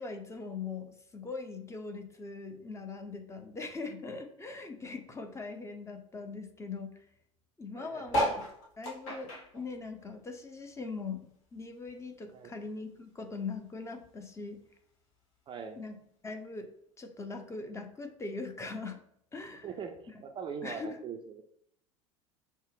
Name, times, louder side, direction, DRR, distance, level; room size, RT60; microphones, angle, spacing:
voice 1, 0.0-7.0 7.6-8.3 8.8-14.6 15.8-16.0 16.2-16.7 17.0-19.0 19.3-19.7 20.6-21.0, left 4 dB, 15° left, 6 dB, 0.6 m, -41 dB
voice 2, 7.8-8.3 12.3-12.6 15.5-15.8 19.6-20.0 20.2-21.4, right 6 dB, 30° right, 6 dB, 0.4 m, -41 dB
sound 1, 8.1-10.8 11.2-12.7 13.2-13.3 13.4-13.5 13.7-14.1 14.9-15.0, equal, 65° left, 1.4 m, -35 dB
5.2 x 2.0 x 3.5 m, 0.70 s
figure-of-eight pair, 70°, 17 cm